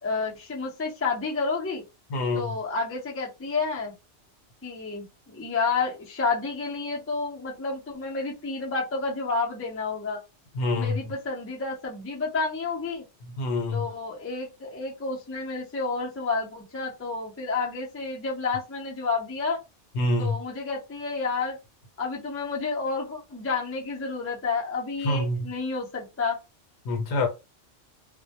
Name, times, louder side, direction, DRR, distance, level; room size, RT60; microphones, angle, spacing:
voice 1, 0.0-1.8 2.3-3.9 4.6-10.2 10.8-13.0 13.7-19.6 20.2-21.6 22.0-26.4, left 4 dB, 15° left, 0.4 m, -30 dB
voice 2, 2.1-2.6 10.5-11.0 13.4-13.9 19.9-20.4 25.0-25.5 26.8-27.3, left 2 dB, 70° left, 0.9 m, -26 dB
2.1 x 2.1 x 2.7 m
omnidirectional pair, 1.2 m